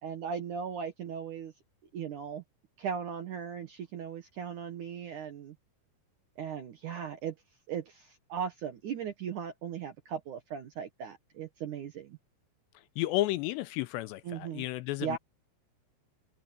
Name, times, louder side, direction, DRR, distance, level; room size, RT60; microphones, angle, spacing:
voice 1, 0.0-1.5 1.9-2.4 2.8-5.6 6.4-7.3 7.7-12.2 14.2-14.6 15.0-15.2, right 7 dB, 70° right, 2.0 m, -38 dB
voice 2, 13.0-15.2, left 17 dB, 80° left, 2.7 m, -32 dB
open air
omnidirectional pair, 5.3 m